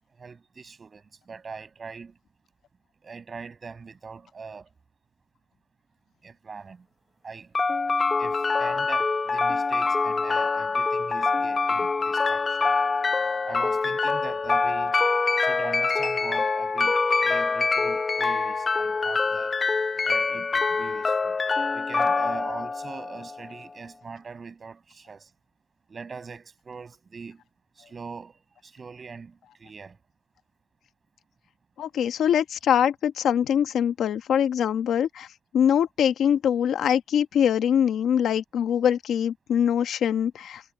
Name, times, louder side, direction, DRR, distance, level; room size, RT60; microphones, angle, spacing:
voice 1, 0.2-2.1 3.0-4.7 6.2-6.9 7.2-7.5 8.2-12.6 13.4-15.0 15.4-17.0 17.2-19.6 20.0-21.4 21.7-25.3 25.9-27.4 27.9-30.0, right 5 dB, 35° right, 7.8 m, -42 dB
sound 1, 7.5-23.6, left 4 dB, 30° left, 0.8 m, -25 dB
voice 2, 31.8-35.3 35.5-40.6, left 9 dB, 75° left, 1.3 m, -23 dB
cardioid pair, 125°, 0 cm